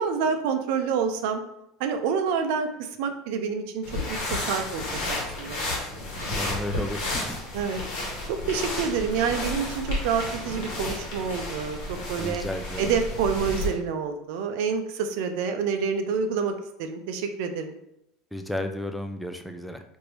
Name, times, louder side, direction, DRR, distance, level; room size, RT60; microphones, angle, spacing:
voice 1, 0.0-1.4 1.8-3.8 4.1-5.6 7.5-7.8 8.3-11.8 12.1-12.4 12.8-17.8, right 6 dB, 70° right, 6 dB, 0.4 m, -28 dB
sound 1, 3.8-13.7, left 2 dB, 70° left, 1.1 m, -32 dB
voice 2, 6.3-7.4 12.2-12.8 18.3-19.8, left 1 dB, ahead, 6 dB, 0.3 m, -33 dB
3.2 x 2.6 x 3.0 m, 0.81 s
supercardioid pair, 95°, 0 cm